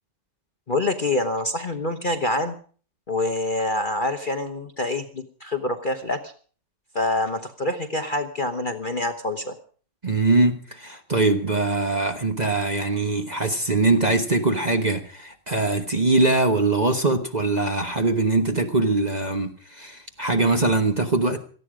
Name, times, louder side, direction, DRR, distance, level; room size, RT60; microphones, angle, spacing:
voice 1, 0.7-2.6 3.1-6.3 6.9-9.6, left 2 dB, 35° left, 1.0 m, -26 dB
voice 2, 10.0-21.4, right 2 dB, 30° right, 1.1 m, -22 dB
18.0 x 14.0 x 5.0 m
omnidirectional pair, 1.8 m